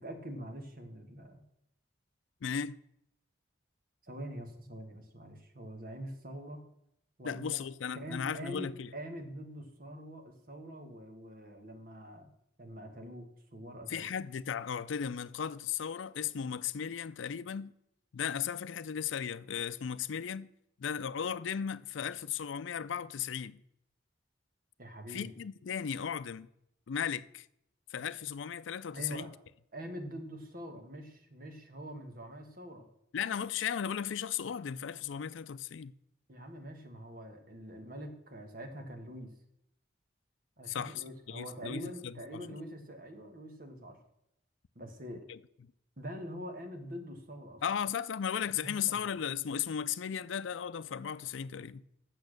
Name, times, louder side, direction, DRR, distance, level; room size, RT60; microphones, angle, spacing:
voice 1, 0.0-1.4 4.0-6.6 7.2-7.7 7.9-12.3 12.6-14.1 24.8-25.3 28.9-29.3 29.7-32.9 36.3-39.3 40.6-44.0 44.7-45.3 46.0-47.6 48.5-49.0, equal, 50° right, 1.5 m, -44 dB
voice 2, 2.4-2.8 7.2-8.9 13.9-17.7 18.1-20.5 20.8-23.6 25.1-26.5 26.9-27.5 27.9-29.3 33.1-35.9 40.7-42.6 45.3-45.4 47.6-51.8, left 8 dB, 85° left, 0.4 m, -36 dB
8.6 x 7.0 x 6.5 m
head